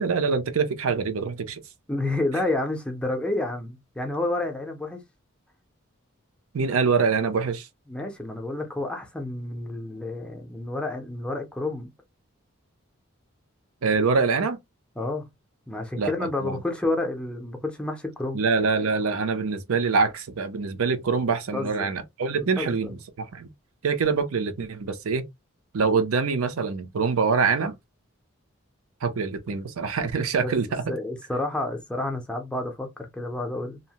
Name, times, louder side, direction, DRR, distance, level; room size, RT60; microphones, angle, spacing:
voice 1, 0.0-1.6 6.5-7.7 13.8-14.6 16.0-16.6 18.3-23.5 23.8-25.2 25.7-27.7 29.0-30.8, right 5 dB, 85° right, 0.5 m, -25 dB
voice 2, 1.9-5.0 7.9-11.9 15.0-15.3 15.7-18.4 21.5-21.9 22.4-23.0 30.4-30.5 30.9-33.8, left 2 dB, 5° left, 0.4 m, -30 dB
2.7 x 2.0 x 2.8 m
head